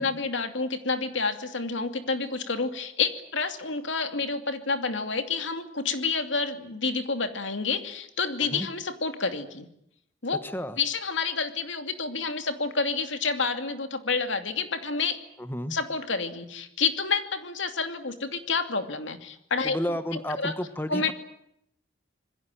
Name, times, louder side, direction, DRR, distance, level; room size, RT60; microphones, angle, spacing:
voice 1, 0.0-9.7 10.2-10.4 10.8-15.2 15.7-19.8 20.1-20.5 20.9-21.1, left 4 dB, 80° left, 7 dB, 2.6 m, -29 dB
voice 2, 10.4-10.8 15.4-15.7 19.6-21.1, equal, 10° left, 10 dB, 1.3 m, -32 dB
26.5 x 21.5 x 9.1 m, 0.76 s
head